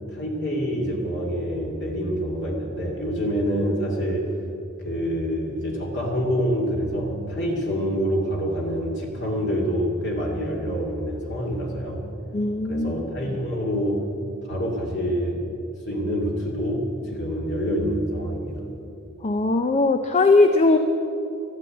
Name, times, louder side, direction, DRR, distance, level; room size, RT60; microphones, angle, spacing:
voice 1, 0.1-4.3 4.8-12.0 12.7-14.0 14.5-15.4 15.9-18.6, equal, 55° left, -1 dB, 2.3 m, -26 dB
voice 2, 12.3-13.4 19.2-20.8, left 3 dB, 30° left, 7 dB, 0.6 m, -20 dB
13.0 x 11.5 x 8.8 m, 2.9 s
head